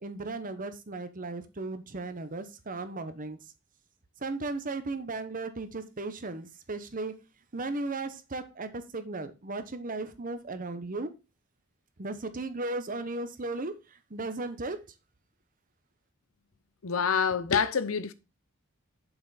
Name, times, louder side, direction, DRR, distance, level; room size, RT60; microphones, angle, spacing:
voice 1, 0.0-3.4 4.2-7.1 7.5-11.1 12.0-13.7 14.1-14.8, right 2 dB, 40° right, 0.9 m, -36 dB
voice 2, 16.8-18.1, left 6 dB, 75° left, 0.7 m, -26 dB
7.0 x 5.6 x 4.0 m
head